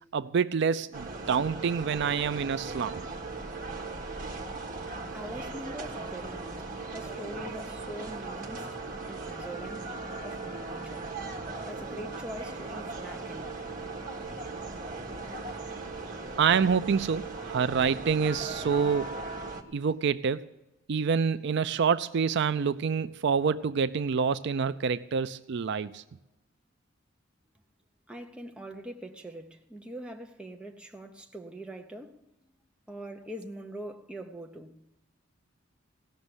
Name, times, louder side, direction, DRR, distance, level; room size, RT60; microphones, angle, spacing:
voice 1, 0.1-3.0 16.4-19.2 19.7-20.5 20.9-26.0, right 6 dB, 60° right, 0.4 m, -27 dB
sound 1, 0.9-19.6, right 3 dB, 45° right, 1.5 m, -38 dB
voice 2, 5.1-8.8 9.1-9.9 10.2-11.1 11.6-13.6 28.1-32.2 32.9-34.8, right 1 dB, 5° right, 0.9 m, -43 dB
17.0 x 6.4 x 9.7 m
head